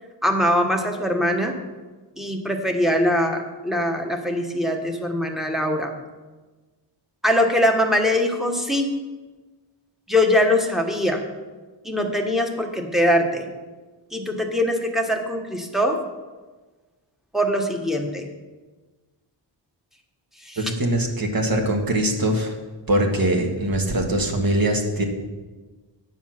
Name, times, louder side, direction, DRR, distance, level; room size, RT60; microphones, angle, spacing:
voice 1, 0.2-1.5 2.2-5.9 7.2-8.9 10.1-11.2 11.8-13.5 14.1-16.0 17.3-18.2 20.4-20.6, left 1 dB, ahead, 2 dB, 1.3 m, -22 dB
voice 2, 20.6-22.5 22.9-25.0, right 1 dB, 50° right, 3 dB, 1.6 m, -22 dB
9.5 x 7.2 x 5.9 m, 1.3 s
wide cardioid pair, 105°, 45 cm